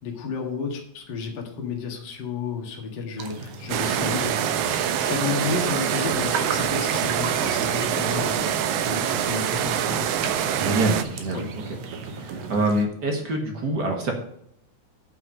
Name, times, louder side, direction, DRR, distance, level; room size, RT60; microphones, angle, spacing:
voice 1, 0.0-4.6 5.0-8.4 8.8-10.3 11.3-11.5, left 5 dB, 40° left, 1 dB, 2.1 m, -32 dB
sound 1, 3.2-12.9, right 5 dB, 65° right, 2.1 m, -36 dB
sound 2, 3.7-11.0, right 9 dB, 85° right, 2.2 m, -25 dB
voice 2, 10.5-11.4 12.1-14.1, right 2 dB, 45° right, 2 dB, 1.7 m, -25 dB
8.0 x 5.8 x 6.3 m, 0.71 s
omnidirectional pair, 3.4 m